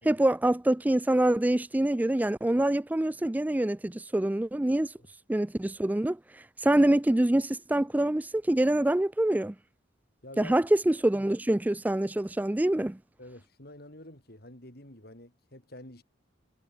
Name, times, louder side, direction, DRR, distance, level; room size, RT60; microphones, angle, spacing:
voice 1, 0.0-4.9 5.3-9.5 10.4-13.0, right 1 dB, 10° right, 0.3 m, -25 dB
voice 2, 10.2-10.6 13.2-16.0, left 1 dB, 55° left, 5.8 m, -48 dB
head